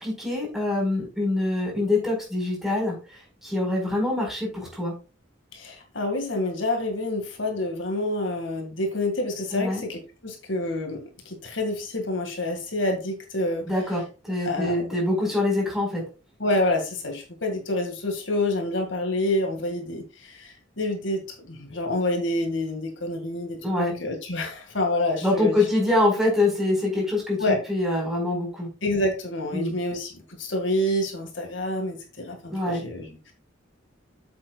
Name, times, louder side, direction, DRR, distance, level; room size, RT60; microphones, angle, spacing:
voice 1, 0.0-4.9 9.5-9.8 13.7-16.0 23.6-23.9 25.2-28.7 29.5-29.7 32.5-32.8, left 2 dB, ahead, -2 dB, 4.6 m, -25 dB
voice 2, 5.5-13.7 14.4-14.8 16.4-25.5 27.4-27.6 28.8-33.3, left 1 dB, 75° left, 4 dB, 2.0 m, -28 dB
8.6 x 7.8 x 2.3 m, 0.32 s
head